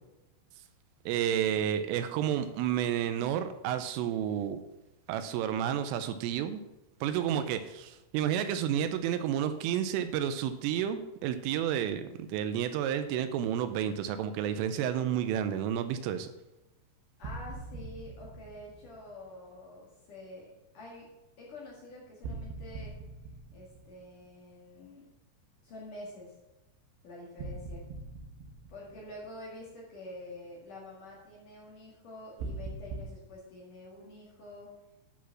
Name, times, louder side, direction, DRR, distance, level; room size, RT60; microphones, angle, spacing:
voice 1, 1.1-4.6 5.1-6.6 7.0-16.3, right 9 dB, 85° right, 10 dB, 3.1 m, -31 dB
voice 2, 17.2-20.5 20.7-21.1 21.4-22.9 23.5-25.1 25.6-26.3 27.0-27.8 28.7-34.7, left 1 dB, 55° left, -4 dB, 2.7 m, -47 dB
sound 1, 17.2-19.3 22.2-24.5 27.4-29.4 32.4-33.0, right 3 dB, 65° right, 3.3 m, -42 dB
11.0 x 6.2 x 5.9 m, 0.99 s
omnidirectional pair, 5.9 m